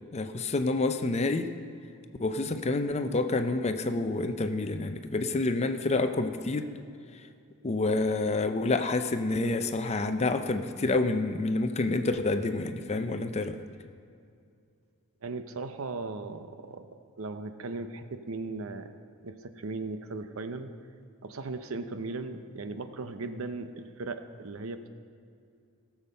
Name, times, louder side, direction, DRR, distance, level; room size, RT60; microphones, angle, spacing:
voice 1, 0.1-1.5 2.2-6.7 7.6-13.6, left 2 dB, 30° left, 8 dB, 0.5 m, -28 dB
voice 2, 15.2-18.9 19.2-20.7 21.2-24.9, right 3 dB, 70° right, 9 dB, 0.7 m, -37 dB
17.5 x 7.2 x 5.5 m, 2.5 s
head